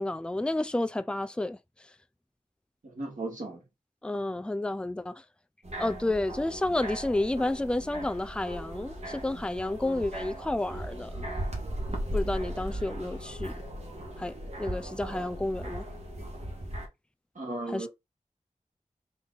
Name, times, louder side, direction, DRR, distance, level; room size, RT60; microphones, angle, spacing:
voice 1, 0.0-1.6 4.0-5.2 5.8-11.2 12.1-13.5 14.2-15.8 17.7-17.9, left 2 dB, 5° left, 0.4 m, -31 dB
voice 2, 2.8-3.6 17.4-17.9, right 2 dB, 75° right, 2.3 m, -36 dB
sound 1, 5.6-16.9, right 1 dB, 55° right, 1.8 m, -37 dB
4.0 x 3.5 x 3.8 m
wide cardioid pair, 85°, 13 cm